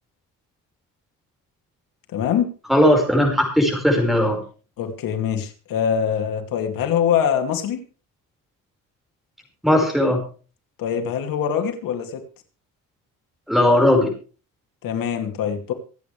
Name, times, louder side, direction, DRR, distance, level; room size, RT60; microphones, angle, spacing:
voice 1, 2.1-2.5 4.8-7.9 10.8-12.2 14.8-15.7, left 8 dB, 85° left, 4 dB, 2.6 m, -23 dB
voice 2, 2.7-4.4 9.6-10.2 13.5-14.1, left 1 dB, ahead, 2 dB, 5.1 m, -17 dB
26.5 x 8.9 x 3.4 m, 0.37 s
cardioid pair, 155°, 33 cm